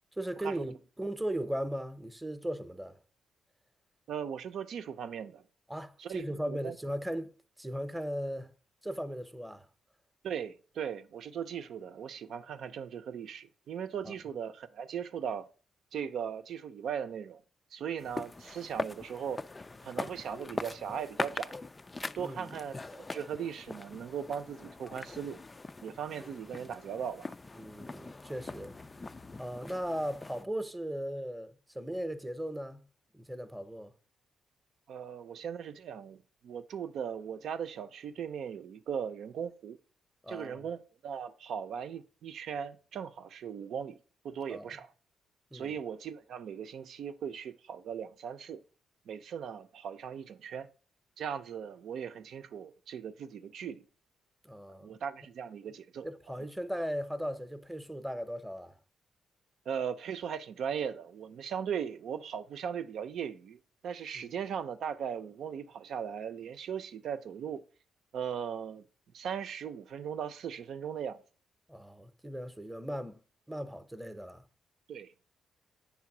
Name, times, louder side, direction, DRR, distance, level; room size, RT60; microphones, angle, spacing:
voice 1, 0.2-3.0 5.7-7.3 7.6-8.5 8.8-9.7 14.0-14.2 22.2-22.6 27.5-28.7 29.4-32.8 33.1-33.9 40.2-40.7 44.5-44.7 45.5-45.8 54.4-55.0 56.0-58.7 64.2-64.3 71.7-73.2 73.5-74.4, equal, 5° right, 0.8 m, -37 dB
voice 2, 4.1-5.4 6.0-6.8 10.2-15.5 15.9-17.4 17.7-19.5 19.8-21.6 22.1-25.4 25.8-27.3 34.9-39.8 40.3-44.0 44.2-44.9 45.5-48.6 49.1-50.7 51.2-53.8 54.8-56.1 59.7-67.6 68.1-68.8 69.1-71.2 74.9-75.1, right 8 dB, 70° right, 0.7 m, -38 dB
sound 1, 18.0-30.4, left 3 dB, 20° left, 0.3 m, -42 dB
8.6 x 3.5 x 6.0 m
cardioid pair, 100°, 0 cm